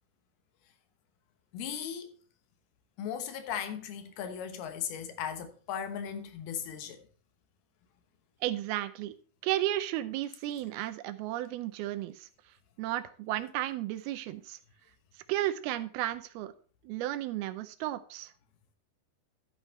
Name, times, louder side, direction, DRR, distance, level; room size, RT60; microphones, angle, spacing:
voice 1, 1.5-2.1 3.0-7.1, left 8 dB, 85° left, 3.1 m, -37 dB
voice 2, 8.4-9.1 9.4-12.3 12.8-14.6 15.3-16.5 16.8-18.3, right 14 dB, 90° right, 2.6 m, -33 dB
12.0 x 9.0 x 3.1 m
omnidirectional pair, 4.4 m